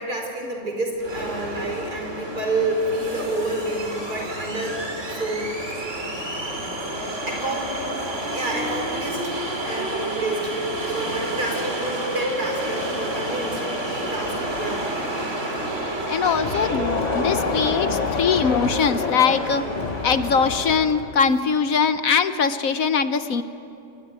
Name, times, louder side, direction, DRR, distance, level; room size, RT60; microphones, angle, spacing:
voice 1, 0.0-4.8 5.1-6.0 7.3-7.8 8.3-9.3 9.6-10.5 10.9-14.9 15.5-15.7, right 2 dB, 75° right, 2 dB, 5.3 m, -29 dB
sound 1, 1.0-20.9, right 1 dB, 45° right, 3.4 m, -30 dB
voice 2, 16.1-19.6 20.0-23.4, left 6 dB, 65° left, 11 dB, 1.3 m, -21 dB
Crowd, 16.2-21.4, left 5 dB, 40° left, 0.6 m, -28 dB
27.0 x 21.0 x 9.5 m, 2.9 s
omnidirectional pair, 1.7 m